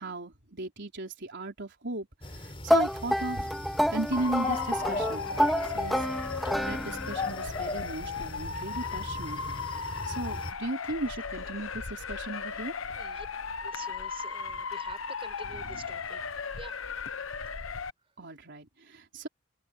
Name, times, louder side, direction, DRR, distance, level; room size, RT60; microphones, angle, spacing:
voice 1, 0.0-3.5 3.9-6.1 6.6-9.6 10.1-12.7 15.7-15.8 18.2-19.3, right 2 dB, 60° right, 4.2 m, -36 dB
sound 1, 2.2-10.5, left 3 dB, 30° left, 4.0 m, -38 dB
sound 2, 2.7-7.3, equal, ahead, 1.9 m, -28 dB
Motor vehicle (road) / Siren, 4.1-17.9, left 5 dB, 80° left, 1.1 m, -36 dB
voice 2, 12.9-13.3 13.6-16.2 16.5-16.8, right 3 dB, 30° right, 6.1 m, -47 dB
head